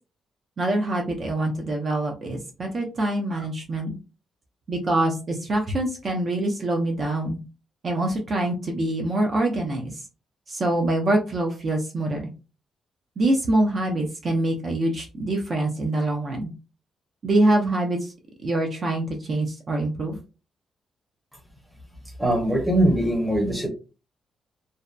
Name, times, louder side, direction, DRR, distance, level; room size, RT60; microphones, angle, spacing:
voice 1, 0.6-3.9 4.7-7.4 7.8-10.0 10.5-12.3 13.2-16.5 17.2-18.1 18.4-20.2, right 1 dB, 40° right, 1 dB, 0.5 m, -25 dB
voice 2, 22.2-23.7, right 1 dB, 5° right, 1 dB, 0.7 m, -21 dB
2.6 x 2.1 x 2.3 m, 0.32 s
cardioid pair, 150°, 0 cm